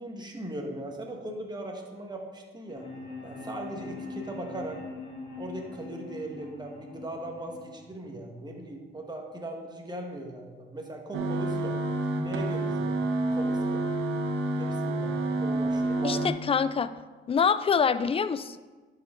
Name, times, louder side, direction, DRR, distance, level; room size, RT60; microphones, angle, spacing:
voice 1, 0.0-2.8 3.2-4.8 5.4-11.7 12.2-13.8 14.6-16.2, right 1 dB, 20° right, 1 dB, 1.4 m, -39 dB
sound 1, 2.7-8.7, left 3 dB, 60° left, 2.0 m, -42 dB
sound 2, 11.1-16.3, right 2 dB, 80° right, 0.9 m, -28 dB
voice 2, 16.0-16.9 17.3-18.6, left 6 dB, 30° left, 14 dB, 0.4 m, -25 dB
11.5 x 4.8 x 3.8 m, 1.3 s
cardioid pair, 90°, 20 cm